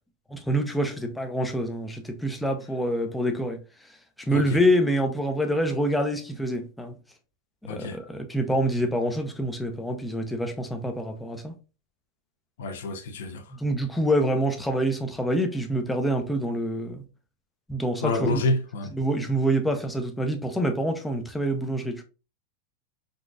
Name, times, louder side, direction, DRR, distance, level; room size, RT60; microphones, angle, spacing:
voice 1, 0.3-6.9 7.7-11.5 13.5-17.0 17.7-18.4 18.9-22.0, equal, 5° left, 0.5 m, -26 dB
voice 2, 4.3-4.6 7.6-8.0 12.6-13.5 18.0-18.9, left 3 dB, 80° left, 0.5 m, -28 dB
3.9 x 2.3 x 2.4 m
supercardioid pair, 135°, 0 cm